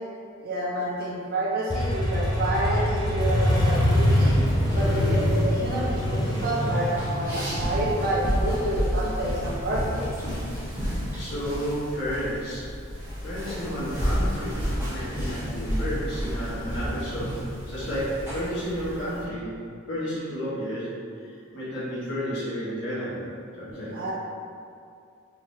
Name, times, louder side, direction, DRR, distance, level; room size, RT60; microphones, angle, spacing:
voice 1, 0.4-4.4 4.7-10.0 23.9-24.1, right 1 dB, 45° right, -4 dB, 0.4 m, -28 dB
Motorcycle, 1.7-9.3, equal, 20° left, 0.5 m, -24 dB
sound 1, 4.5-19.2, equal, 10° right, 0.9 m, -31 dB
voice 2, 11.2-12.7 13.2-14.6 14.9-17.4 17.6-19.5 19.9-24.0, equal, 60° left, -10 dB, 1.2 m, -32 dB
3.8 x 3.1 x 2.6 m, 2.4 s
head